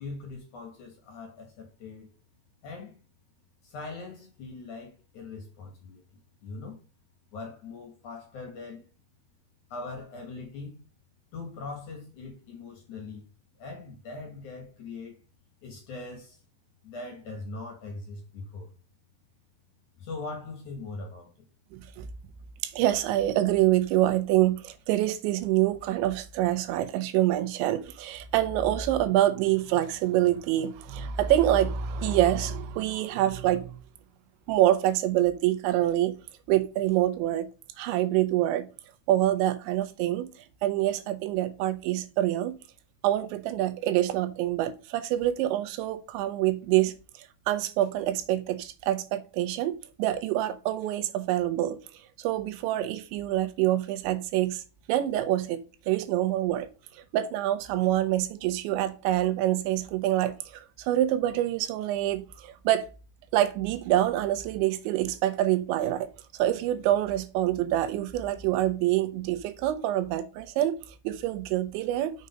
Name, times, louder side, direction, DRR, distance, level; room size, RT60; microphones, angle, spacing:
voice 1, 0.0-2.1 2.6-3.0 3.6-6.0 6.4-6.8 7.3-8.8 9.7-10.8 11.3-13.2 13.6-15.2 15.6-16.4 16.8-18.7 20.0-21.3, left 3 dB, 55° left, 2.4 m, -41 dB
voice 2, 21.7-22.1 22.6-33.8 34.5-36.1 36.5-37.5 37.8-38.7 39.1-40.3 40.6-42.5 43.0-51.8 52.2-54.6 54.9-56.7 57.1-62.9 63.3-66.1 66.3-70.8 71.0-72.1, right 13 dB, 85° right, 3.2 m, -26 dB
6.8 x 5.2 x 5.2 m
omnidirectional pair, 5.1 m